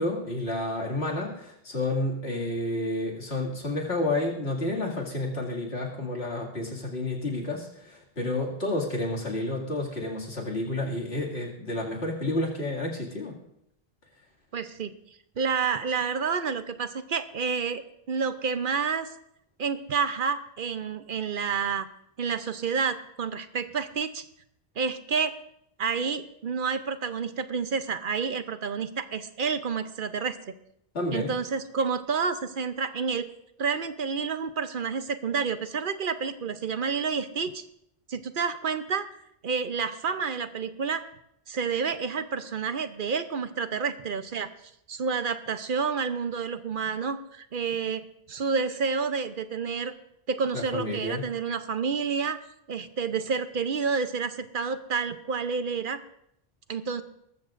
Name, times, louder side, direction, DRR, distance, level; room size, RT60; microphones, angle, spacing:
voice 1, 0.0-13.4 30.9-31.3 50.5-51.2, left 2 dB, 90° left, -2 dB, 2.7 m, -30 dB
voice 2, 14.5-14.9 15.4-17.8 18.1-19.1 19.6-21.9 22.2-24.2 24.8-25.3 25.8-30.4 31.1-33.2 33.6-37.6 38.1-39.1 39.4-41.0 41.5-44.5 44.9-49.9 50.3-52.4 52.7-56.0 56.7-57.0, right 5 dB, 60° right, 10 dB, 0.9 m, -29 dB
19.5 x 14.0 x 2.5 m, 0.75 s
omnidirectional pair, 1.0 m